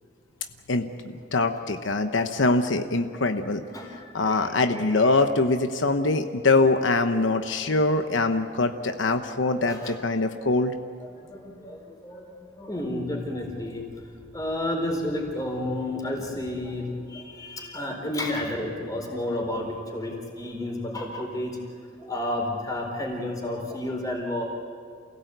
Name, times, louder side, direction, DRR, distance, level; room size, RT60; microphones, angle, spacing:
voice 1, 1.3-3.6 4.1-10.7, left 3 dB, 80° left, 7 dB, 1.0 m, -23 dB
voice 2, 3.7-5.2 9.6-10.0 11.0-13.9 14.3-21.6 22.0-24.4, left 1 dB, 20° left, 1 dB, 4.1 m, -31 dB
28.5 x 17.0 x 8.2 m, 2.3 s
head